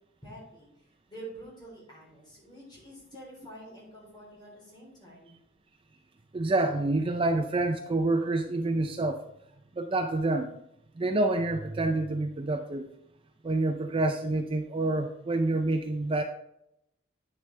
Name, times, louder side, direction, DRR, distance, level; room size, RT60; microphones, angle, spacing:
voice 1, 0.2-0.7 1.1-5.4, right 1 dB, 20° left, -4 dB, 3.6 m, -47 dB
voice 2, 6.3-9.2 9.8-10.5 11.0-12.9 13.4-16.2, right 2 dB, 25° right, 6 dB, 0.4 m, -27 dB
9.4 x 6.6 x 3.3 m, 0.80 s
head